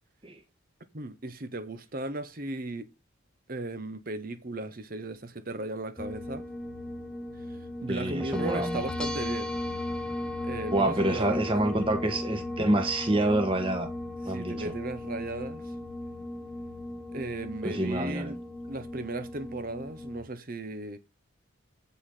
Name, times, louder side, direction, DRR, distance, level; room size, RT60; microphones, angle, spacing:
voice 1, 0.9-2.9 3.5-6.5 7.5-9.6 10.4-11.8 14.2-15.7 17.1-18.4 18.7-21.0, right 2 dB, 45° right, 0.9 m, -36 dB
sound 1, 6.0-20.2, left 1 dB, 5° left, 1.1 m, -36 dB
voice 2, 7.9-8.8 10.7-13.9 14.3-14.7 17.6-18.3, right 1 dB, 25° right, 1.5 m, -27 dB
8.3 x 5.7 x 5.6 m
head